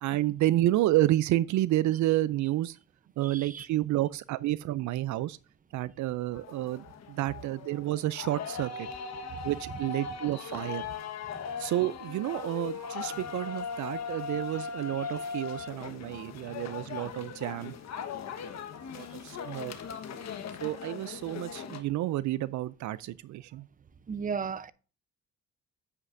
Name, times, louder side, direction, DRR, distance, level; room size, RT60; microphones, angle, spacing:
voice 1, 0.0-2.8 3.2-5.4 5.7-8.9 9.4-10.9 11.6-17.7 18.3-18.5 18.9-19.8 20.6-23.7, right 15 dB, 70° right, 0.4 m, -30 dB
voice 2, 3.2-3.7 9.3-9.4 11.3-11.4 15.6-15.7 24.1-24.7, right 6 dB, 25° right, 0.7 m, -35 dB
sound 1, 6.3-21.8, left 6 dB, 60° left, 1.3 m, -39 dB
9.5 x 8.0 x 2.6 m
cardioid pair, 90°, 30 cm